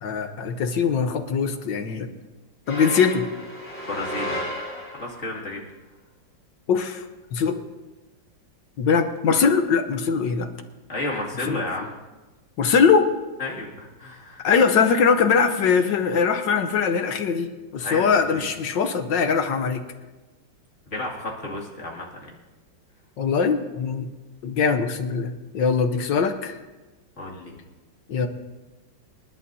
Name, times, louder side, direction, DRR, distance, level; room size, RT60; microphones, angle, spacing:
voice 1, 0.0-2.1 2.7-3.3 6.7-7.0 7.3-7.6 8.8-10.5 11.5-11.6 12.6-13.1 14.4-19.8 23.2-24.1 24.4-26.6 28.1-28.3, left 6 dB, 65° left, 7 dB, 1.5 m, -21 dB
sound 1, 2.7-5.3, equal, 5° left, 3.3 m, -33 dB
voice 2, 3.9-4.4 4.9-5.6 10.9-11.9 13.4-14.4 17.8-18.5 20.9-22.3 27.2-27.5, left 2 dB, 35° left, -3 dB, 2.7 m, -32 dB
28.5 x 11.0 x 2.8 m, 1.2 s
omnidirectional pair, 2.2 m